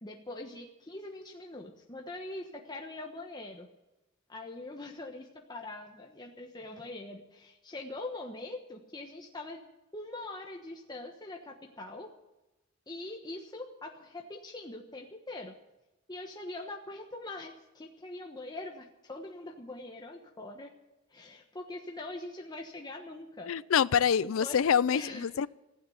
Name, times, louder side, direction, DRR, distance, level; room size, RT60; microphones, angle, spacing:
voice 1, 0.0-3.7 4.3-9.6 9.9-12.1 12.9-15.5 16.1-20.7 21.1-23.5 24.4-24.6 24.9-25.2, left 2 dB, 20° left, 1.2 m, -43 dB
voice 2, 23.5-25.5, left 7 dB, 90° left, 0.4 m, -26 dB
15.5 x 8.9 x 9.4 m
head